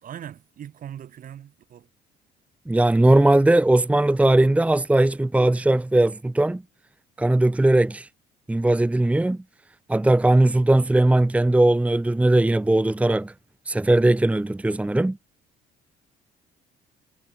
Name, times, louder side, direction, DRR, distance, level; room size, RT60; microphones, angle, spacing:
voice 1, 0.0-1.9, right 10 dB, 55° right, 5.6 m, -40 dB
voice 2, 2.7-6.6 7.2-8.1 8.5-9.4 9.9-13.3 13.7-15.2, right 1 dB, 10° right, 1.1 m, -19 dB
cardioid pair, 110°, 17 cm